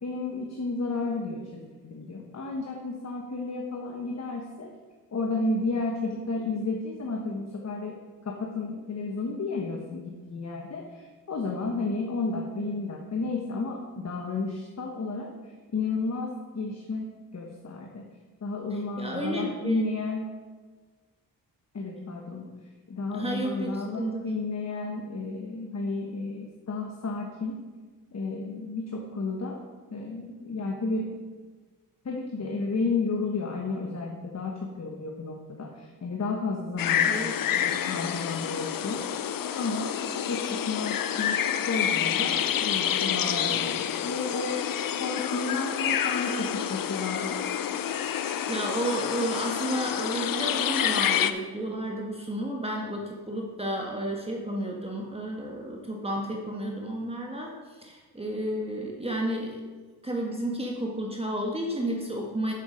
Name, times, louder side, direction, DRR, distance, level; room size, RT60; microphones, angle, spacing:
voice 1, 0.0-4.7 5.1-8.0 8.2-17.1 17.3-18.1 18.4-20.4 21.7-22.5 22.9-27.7 28.1-29.6 29.9-31.2 32.0-39.1 39.5-41.4 41.7-44.6 45.0-47.4, left 3 dB, 40° left, 0 dB, 1.2 m, -32 dB
voice 2, 18.7-19.8 23.1-24.4 37.1-37.3 48.2-59.6 60.0-62.5, right 1 dB, 15° right, -1 dB, 1.5 m, -32 dB
sound 1, 36.8-51.3, left 9 dB, 55° left, 0.6 m, -28 dB
7.3 x 7.3 x 5.1 m, 1.4 s
supercardioid pair, 60°, 40 cm